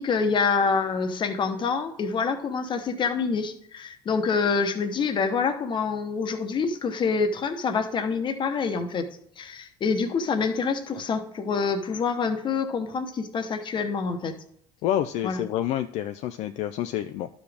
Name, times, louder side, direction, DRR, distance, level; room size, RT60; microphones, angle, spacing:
voice 1, 0.0-9.1 9.4-14.3 15.2-15.4, left 5 dB, 40° left, 8 dB, 1.0 m, -26 dB
voice 2, 14.8-17.3, left 11 dB, 65° left, 9 dB, 0.4 m, -28 dB
11.5 x 5.0 x 3.5 m, 0.72 s
supercardioid pair, 90°, 12 cm